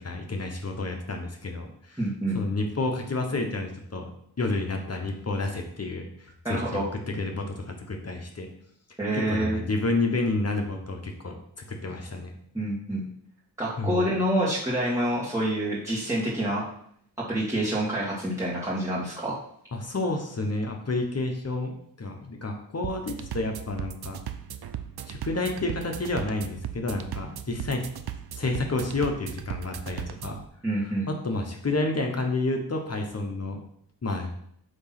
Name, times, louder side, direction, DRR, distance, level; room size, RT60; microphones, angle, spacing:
voice 1, 0.0-4.1 4.4-8.5 9.1-11.4 11.7-12.3 13.8-14.1 19.7-24.2 25.1-27.8 28.3-30.4 31.1-33.6 34.0-34.3, left 2 dB, 40° left, 3 dB, 1.0 m, -30 dB
voice 2, 2.0-2.4 6.4-6.8 9.0-9.6 12.5-13.0 13.6-16.7 17.3-19.4 30.6-31.1, right 1 dB, 5° right, -7 dB, 1.6 m, -27 dB
sound 1, 22.8-30.5, right 9 dB, 70° right, 0.6 m, -37 dB
7.9 x 3.0 x 5.8 m, 0.67 s
wide cardioid pair, 105°, 40 cm